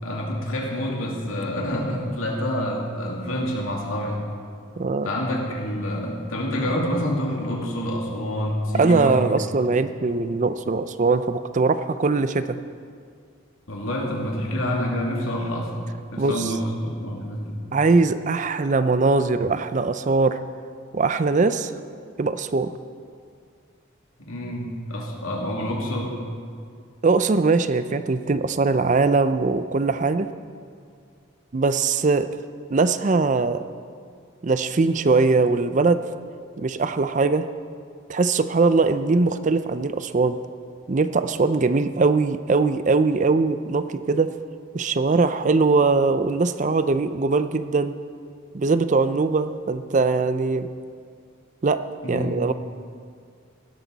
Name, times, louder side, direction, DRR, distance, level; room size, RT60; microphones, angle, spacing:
voice 1, 0.0-4.2 5.0-9.2 9.6-9.7 13.7-15.7 16.1-17.6 24.2-26.2 52.0-52.5, equal, 85° left, -1 dB, 2.5 m, -27 dB
voice 2, 4.8-5.1 8.7-12.6 16.2-16.5 17.7-20.4 20.9-21.7 22.2-22.7 27.0-30.3 31.5-32.3 32.7-33.6 34.4-36.0 36.6-37.5 38.1-40.4 40.9-44.3 44.7-47.9 48.5-50.7 51.6-51.8 52.1-52.5, right 3 dB, 35° right, 12 dB, 0.4 m, -21 dB
16.5 x 12.5 x 4.0 m, 2.2 s
head